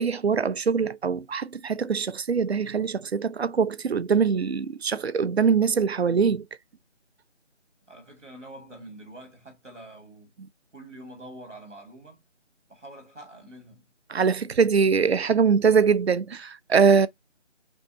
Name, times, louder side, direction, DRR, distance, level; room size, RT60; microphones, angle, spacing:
voice 1, 0.0-6.5 14.1-17.1, right 6 dB, 60° right, 0.5 m, -23 dB
voice 2, 7.9-10.3 10.7-12.2 12.7-13.8, right 1 dB, 85° right, 2.4 m, -45 dB
5.4 x 2.3 x 2.6 m
figure-of-eight pair, 170°, 36 cm